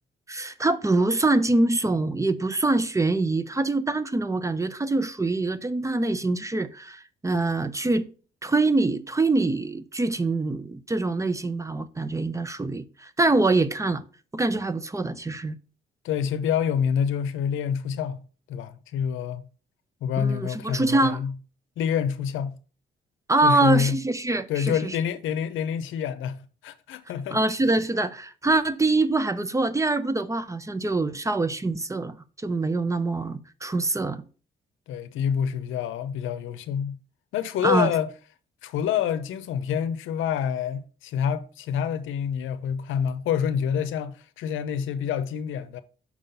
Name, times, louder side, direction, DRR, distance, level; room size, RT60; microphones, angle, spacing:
voice 1, 0.3-8.1 8.4-14.0 14.3-15.6 20.2-21.2 23.3-25.0 27.3-32.2 32.4-34.2 37.6-37.9, right 2 dB, 15° right, 0.5 m, -24 dB
voice 2, 16.0-18.2 18.5-19.4 20.0-21.3 21.8-22.5 23.4-24.0 24.5-27.4 34.9-37.0 37.3-38.1 38.6-45.8, left 8 dB, 80° left, 0.7 m, -27 dB
6.1 x 3.8 x 5.5 m
cardioid pair, 90°, 20 cm